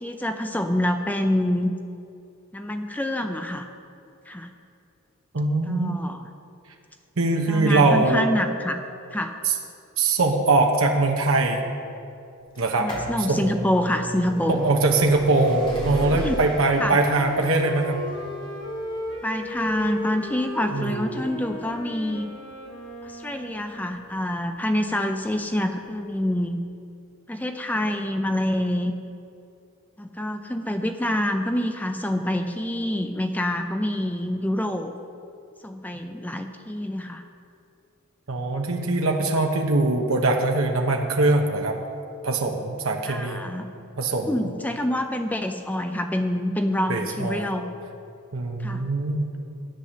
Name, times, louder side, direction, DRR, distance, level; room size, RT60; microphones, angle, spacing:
voice 1, 0.0-1.7 2.5-3.7 4.3-4.5 5.7-6.2 7.5-8.8 9.1-9.3 12.8-14.6 16.1-16.4 16.8-17.0 19.2-22.3 23.0-26.6 27.3-28.9 30.0-34.9 35.6-37.2 43.1-43.7 44.2-47.7 48.6-48.8, left 1 dB, 5° left, 6 dB, 0.5 m, -26 dB
voice 2, 5.3-6.0 7.2-8.3 9.4-9.5 10.0-11.7 12.6-12.9 13.3-13.4 14.5-18.0 20.7-21.0 38.3-41.8 42.2-43.4 44.0-44.3 46.9-47.5 48.3-49.4, right 2 dB, 70° right, 2 dB, 1.0 m, -22 dB
sound 1, 12.6-24.2 25.0-25.1 26.1-26.2 26.4-26.5, right 1 dB, 25° left, 2.3 m, -35 dB
Wind instrument woodwind instrument, 15.6-23.9, equal, 60° left, 2.0 m, -36 dB
11.5 x 8.4 x 6.4 m, 2.6 s
head